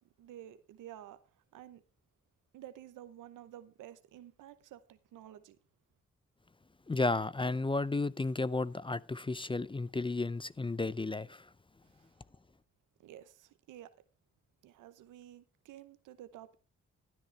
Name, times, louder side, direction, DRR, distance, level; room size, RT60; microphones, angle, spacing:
voice 1, 0.0-1.8 2.5-5.6 11.8-12.1 13.0-13.9 14.6-16.6, right 12 dB, 90° right, 0.9 m, -52 dB
voice 2, 6.9-11.5, left 3 dB, 15° left, 0.5 m, -33 dB
12.5 x 10.5 x 3.3 m
supercardioid pair, 45°, 30 cm